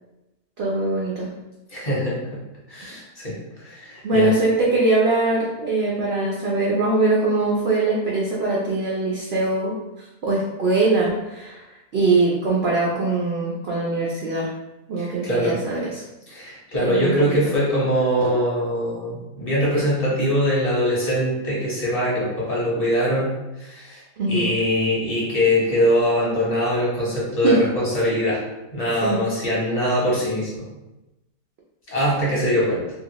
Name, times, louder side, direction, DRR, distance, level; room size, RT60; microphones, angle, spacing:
voice 1, 0.6-1.3 4.0-14.5 14.9-16.0 16.8-17.1 24.2-24.5 27.4-27.6 29.0-29.2, right 2 dB, 60° right, -4 dB, 0.6 m, -22 dB
voice 2, 1.7-2.2 2.7-4.3 15.0-15.5 16.3-23.3 23.6-24.0 24.3-28.4 28.7-30.7 31.9-32.8, equal, 25° left, -7 dB, 1.2 m, -22 dB
2.9 x 2.7 x 2.9 m, 1.0 s
omnidirectional pair, 1.6 m